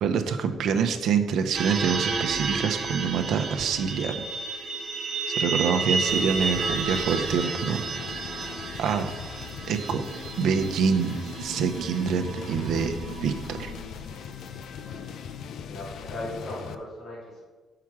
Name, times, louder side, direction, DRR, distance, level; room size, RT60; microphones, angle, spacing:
voice 1, 0.0-4.1 5.4-7.8 8.1-8.3 8.8-9.1 9.7-10.0 10.4-13.7, right 6 dB, 75° right, 7 dB, 0.7 m, -26 dB
sound 1, 1.5-14.1, right 4 dB, 40° right, 0.8 m, -32 dB
sound 2, 6.1-16.7, left 7 dB, 65° left, 0.4 m, -40 dB
voice 2, 15.5-17.4, left 1 dB, 35° left, -7 dB, 2.6 m, -38 dB
7.2 x 5.8 x 4.8 m, 1.3 s
cardioid pair, 165°, 0 cm